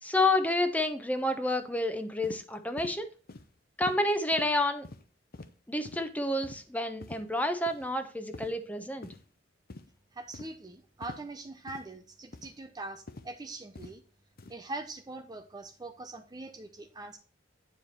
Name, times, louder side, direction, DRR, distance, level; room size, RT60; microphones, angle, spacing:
voice 1, 0.0-3.1 3.8-4.9 5.7-9.1, left 2 dB, 10° left, 8 dB, 1.0 m, -29 dB
sound 1, 2.2-2.4 2.8-3.0 3.3-3.5 3.8-4.0 4.3-4.5 4.8-5.0 5.3-5.5 5.8-6.0 6.4-6.6 7.0-7.2 7.7-7.9 8.3-8.5 9.0-9.2 9.7-9.9 10.3-10.5 11.0-11.2 11.7-11.8 12.3-12.5 13.1-13.3 13.8-13.9 14.4-14.5, left 2 dB, 50° left, 0.8 m, -44 dB
voice 2, 10.1-14.0 14.5-17.2, right 2 dB, 20° right, 7 dB, 0.6 m, -42 dB
9.4 x 4.8 x 4.3 m, 0.38 s
head